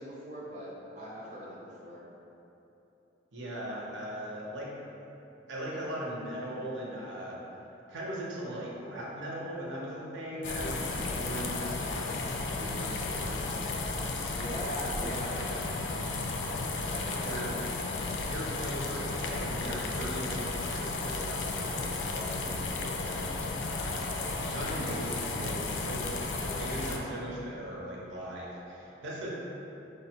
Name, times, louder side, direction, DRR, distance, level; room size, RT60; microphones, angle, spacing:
voice 1, 0.0-2.0 14.2-15.7 16.8-17.5 24.3-24.6, equal, 40° right, -7 dB, 0.4 m, -41 dB
voice 2, 3.3-4.7 5.5-7.4 7.9-12.2 12.5-13.4 17.2-17.5 18.2-23.3 23.7-29.3, right 1 dB, 75° right, -5 dB, 0.7 m, -39 dB
sound 1, 10.4-27.0, left 3 dB, 75° left, 0.3 m, -34 dB
4.9 x 2.1 x 2.8 m, 3.0 s
head